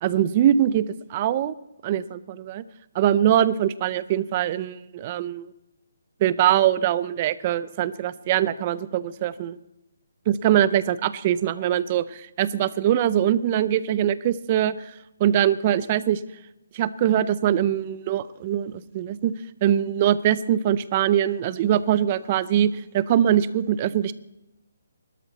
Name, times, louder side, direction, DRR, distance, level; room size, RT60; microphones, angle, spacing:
voice 1, 0.0-1.5 1.8-2.6 2.9-5.5 6.2-9.6 10.3-14.9 15.2-16.2 16.7-19.3 19.6-24.1, right 11 dB, 20° right, 16 dB, 0.5 m, -22 dB
19.5 x 12.5 x 4.1 m, 0.87 s
hypercardioid pair, 175°, 0 cm